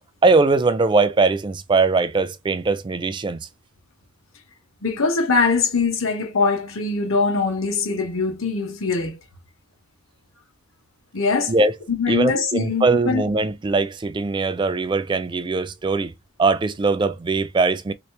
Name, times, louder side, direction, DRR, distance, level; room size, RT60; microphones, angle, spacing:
voice 1, 0.2-3.5 11.5-11.7 12.1-16.1 16.4-17.9, right 3 dB, 25° right, 0.3 m, -20 dB
voice 2, 4.8-9.2 11.1-11.5 11.9-13.2, left 4 dB, 90° left, 1.2 m, -22 dB
3.2 x 3.0 x 3.2 m
head